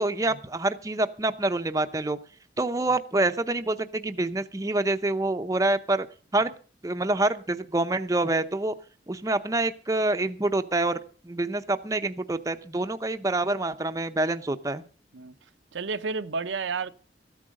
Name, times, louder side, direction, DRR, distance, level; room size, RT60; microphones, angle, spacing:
voice 1, 0.0-2.2 2.6-6.1 6.3-6.5 6.8-8.7 9.1-14.8, right 2 dB, 20° right, 0.6 m, -26 dB
voice 2, 15.7-16.9, right 4 dB, 85° right, 0.7 m, -31 dB
14.0 x 8.6 x 6.4 m
head